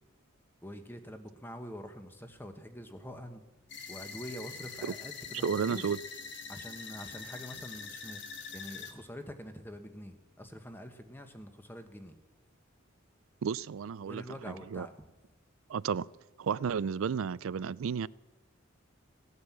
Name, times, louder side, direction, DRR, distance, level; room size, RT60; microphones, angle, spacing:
voice 1, 0.6-3.4 3.9-5.9 6.5-12.2 14.0-15.1, equal, 10° left, 1.1 m, -45 dB
sound 1, 3.7-8.9, left 5 dB, 55° left, 1.7 m, -44 dB
voice 2, 5.4-6.0 13.4-14.9 15.7-16.1 16.4-18.1, right 6 dB, 80° right, 0.4 m, -32 dB
17.0 x 9.6 x 7.3 m
head